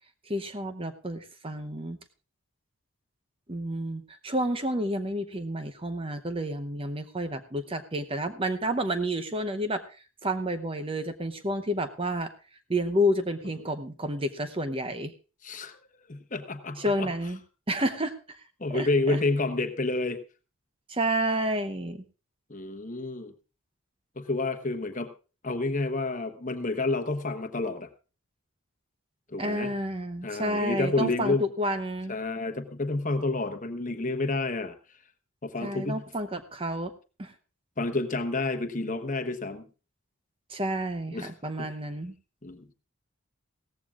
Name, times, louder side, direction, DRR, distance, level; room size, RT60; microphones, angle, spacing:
voice 1, 0.3-2.0 3.5-12.3 12.7-15.1 16.8-17.4 17.7-18.4 18.7-19.2 20.9-22.0 29.4-32.1 35.6-36.9 37.2-37.3 40.5-42.1, equal, 25° right, 9 dB, 0.8 m, -30 dB
voice 2, 15.4-15.8 16.1-17.1 18.6-20.2 22.5-23.3 24.2-25.1 25.4-27.9 29.3-29.7 30.2-31.4 32.1-34.8 35.4-36.0 37.8-39.6 41.1-41.3 41.6-41.7 42.4-42.7, left 2 dB, 35° left, 8 dB, 1.1 m, -29 dB
17.0 x 14.5 x 2.5 m, 0.34 s
head